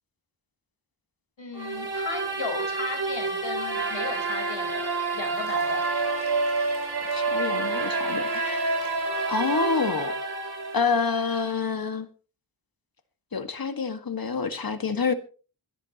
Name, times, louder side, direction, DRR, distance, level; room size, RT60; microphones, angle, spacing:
voice 1, 1.4-5.8, left 4 dB, 75° left, 4.5 m, -36 dB
sound 1, 1.5-11.5, right 3 dB, 55° right, 3.7 m, -28 dB
Liquid, 5.2-11.4, right 4 dB, 85° right, 6.1 m, -50 dB
voice 2, 7.1-8.8 9.3-10.1 10.7-12.1 13.3-15.1, left 5 dB, 50° left, 1.9 m, -27 dB
25.5 x 10.5 x 3.0 m
wide cardioid pair, 60°, 46 cm